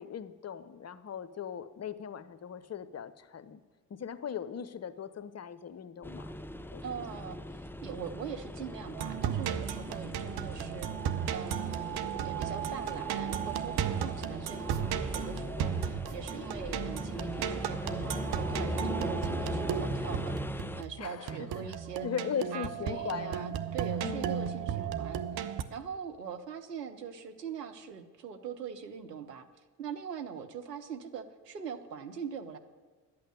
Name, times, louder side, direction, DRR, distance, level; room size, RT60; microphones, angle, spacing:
voice 1, 0.0-3.6 3.9-6.3 6.7-6.8 15.5-15.7 21.0-21.7 22.0-23.5 24.0-24.4, left 8 dB, 35° left, 13 dB, 0.9 m, -39 dB
sound 1, 6.0-20.8, left 1 dB, 5° left, 0.6 m, -39 dB
voice 2, 6.8-22.1 22.5-29.5 29.8-32.6, right 7 dB, 90° right, 6 dB, 0.8 m, -42 dB
sound 2, 8.9-25.6, right 9 dB, 50° right, 1.0 m, -35 dB
11.5 x 8.6 x 9.1 m, 1.4 s
figure-of-eight pair, 45°, 47 cm